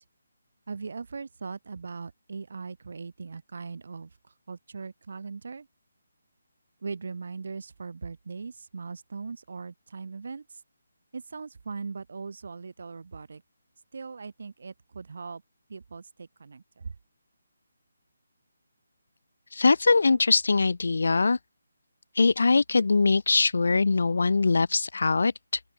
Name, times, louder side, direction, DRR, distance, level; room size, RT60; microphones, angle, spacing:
voice 1, 0.7-5.7 6.8-10.6 11.1-13.4 13.9-15.4 15.7-16.9, right 4 dB, 60° right, 5.2 m, -39 dB
voice 2, 19.5-21.4 22.1-25.6, left 4 dB, 75° left, 1.1 m, -22 dB
open air
hypercardioid pair, 165°, 0 cm